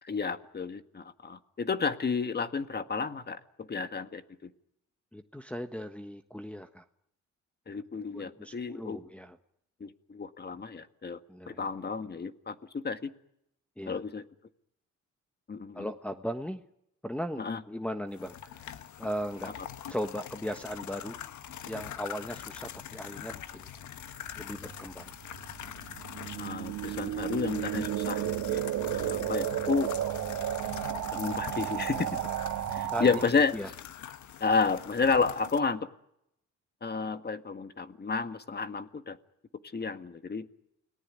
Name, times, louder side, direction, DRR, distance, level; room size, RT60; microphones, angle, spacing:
voice 1, 0.0-4.5 7.7-9.0 9.8-11.2 11.5-13.1 13.9-14.2 15.5-15.9 17.4-17.6 26.4-28.2 28.5-28.6 28.9-29.9 31.1-32.2 32.7-33.5 34.4-35.8 36.8-39.2 39.7-40.5, left 4 dB, 35° left, 9 dB, 1.8 m, -31 dB
voice 2, 5.1-6.8 8.1-9.4 11.3-11.6 13.8-14.0 15.7-16.6 17.0-19.5 19.9-21.2 21.6-23.7 24.4-25.1 32.9-33.2 33.5-33.7, equal, 5° left, 5 dB, 1.4 m, -37 dB
sound 1, 18.1-35.6, left 10 dB, 70° left, 1.5 m, -43 dB
sound 2, 23.9-33.2, right 12 dB, 85° right, 1.8 m, -33 dB
29.5 x 19.0 x 9.7 m, 0.80 s
cardioid pair, 90°, 30 cm